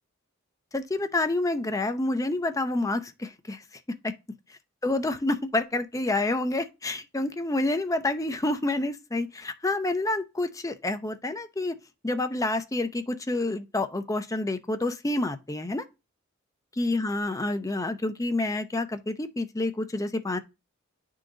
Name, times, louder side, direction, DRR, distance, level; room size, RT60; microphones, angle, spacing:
voice 1, 0.7-3.6 4.8-11.8 12.0-15.8 16.8-20.4, left 2 dB, 15° left, 0.6 m, -28 dB
10.5 x 3.9 x 3.8 m
head